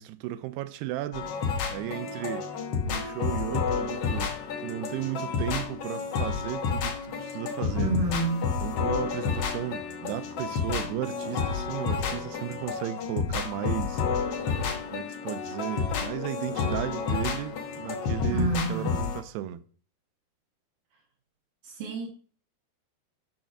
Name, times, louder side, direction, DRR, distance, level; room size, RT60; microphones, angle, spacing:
voice 1, 0.0-1.3 1.7-2.5 2.9-4.4 4.6-8.0 8.6-14.0 14.9-19.6, right 14 dB, 85° right, 2.7 m, -35 dB
sound 1, 1.1-19.2, left 5 dB, 85° left, 1.3 m, -30 dB
voice 2, 7.8-8.6 18.3-19.0 21.6-22.1, right 3 dB, 60° right, 2.6 m, -29 dB
6.9 x 6.4 x 5.9 m
omnidirectional pair, 4.6 m